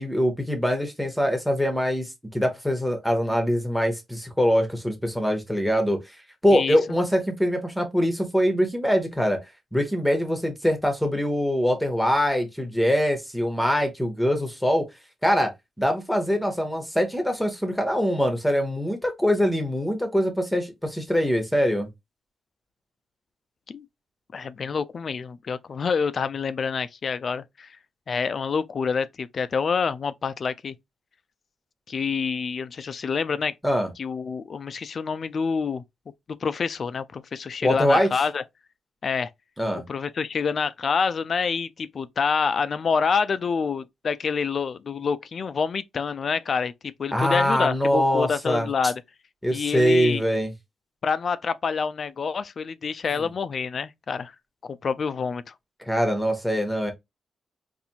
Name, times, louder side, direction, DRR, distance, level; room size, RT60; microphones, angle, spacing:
voice 1, 0.0-6.0 6.4-9.4 9.7-14.9 15.2-15.5 15.8-21.9 33.6-33.9 37.6-38.2 39.6-39.8 47.1-48.7 49.4-50.5 53.1-53.3 55.9-56.9, equal, ahead, 0.9 m, -23 dB
voice 2, 24.3-27.8 28.1-30.7 31.9-33.5 34.0-35.8 36.3-38.4 39.0-39.3 39.9-49.0 49.5-50.2 51.0-54.3 54.6-55.4, left 5 dB, 45° left, 0.3 m, -27 dB
4.1 x 2.6 x 2.8 m
wide cardioid pair, 130°, 0 cm